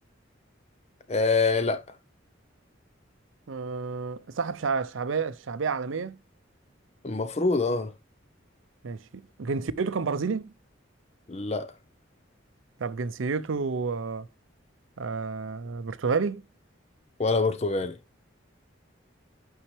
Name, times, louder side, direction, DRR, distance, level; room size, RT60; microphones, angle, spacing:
voice 1, 1.1-1.8 7.0-7.9 11.3-11.7 17.2-18.0, left 3 dB, 35° left, 0.6 m, -25 dB
voice 2, 3.5-6.2 8.8-10.5 12.8-14.3 15.0-16.4, right 5 dB, 85° right, 0.6 m, -30 dB
8.8 x 5.5 x 3.1 m
head